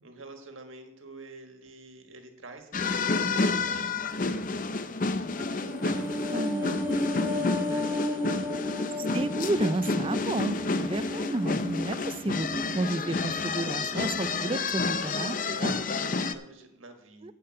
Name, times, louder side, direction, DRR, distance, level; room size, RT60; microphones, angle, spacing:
voice 1, 0.0-4.9 5.4-8.7 10.3-11.2 15.4-17.3, right 3 dB, 85° right, 5 dB, 1.6 m, -48 dB
sound 1, 2.7-16.3, left 3 dB, 40° left, 0.5 m, -30 dB
sound 2, 5.3-13.7 14.0-14.2, left 2 dB, 10° right, 1.0 m, -34 dB
voice 2, 6.3-7.4 9.1-12.5 12.8-15.8 17.2-17.3, right 2 dB, 25° right, 12 dB, 0.4 m, -32 dB
9.9 x 5.4 x 7.7 m, 0.87 s
head